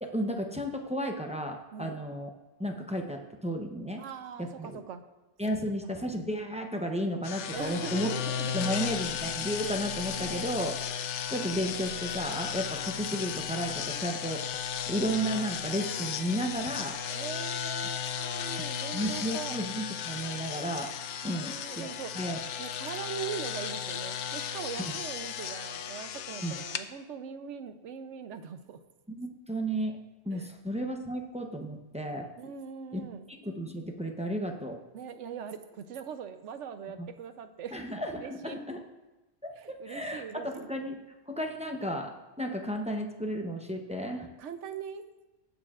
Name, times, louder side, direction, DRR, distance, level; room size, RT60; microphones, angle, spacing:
voice 1, 0.0-2.3 2.6-4.0 4.4-4.8 5.4-8.1 8.5-10.7 11.3-14.4 14.9-17.0 18.9-20.9 21.2-21.9 22.1-22.4 24.8-24.9 26.4-26.5 29.1-30.0 30.3-32.3 32.9-33.1 33.4-34.8 37.0-37.1 37.7-38.8 39.4-41.0 41.3-42.1 42.4-44.3, equal, 5° right, 2 dB, 0.5 m, -33 dB
voice 2, 4.0-5.0 7.5-8.7 10.1-10.5 17.1-19.6 21.2-22.1 22.6-28.8 30.3-30.5 32.4-33.3 34.9-37.8 38.1-38.6 39.6-40.7 44.4-45.0, right 7 dB, 75° right, 9 dB, 1.0 m, -41 dB
sound 1, 7.2-26.8, left 8 dB, 75° left, 0.9 m, -35 dB
18.5 x 6.9 x 2.4 m, 1.1 s
omnidirectional pair, 1.3 m